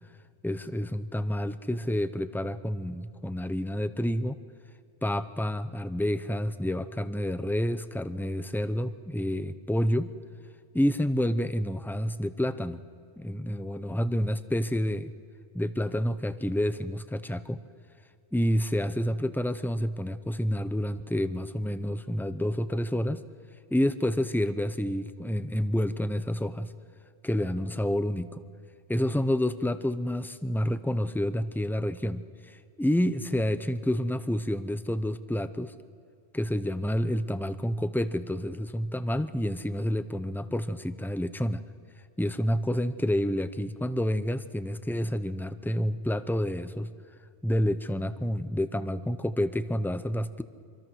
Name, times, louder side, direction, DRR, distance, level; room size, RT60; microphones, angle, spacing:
voice 1, 0.4-4.4 5.0-10.1 10.7-12.8 13.2-15.1 15.5-17.6 18.3-23.2 23.7-26.7 27.2-28.4 28.9-35.7 36.3-41.6 42.2-46.9 47.4-50.4, equal, 5° left, 12 dB, 0.4 m, -29 dB
26.0 x 24.5 x 6.3 m, 2.3 s
omnidirectional pair, 1.1 m